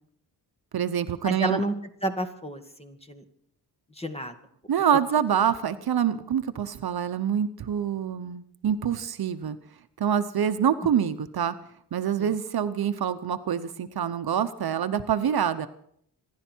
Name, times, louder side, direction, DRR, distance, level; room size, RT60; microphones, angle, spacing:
voice 1, 0.7-1.6 4.7-9.6 10.0-11.5 11.9-15.7, right 8 dB, 60° right, 10 dB, 1.0 m, -26 dB
voice 2, 1.2-1.7 2.0-3.2 4.0-4.4, right 1 dB, 15° left, 7 dB, 2.0 m, -30 dB
26.5 x 11.5 x 4.6 m, 0.67 s
cardioid pair, 85°, 41 cm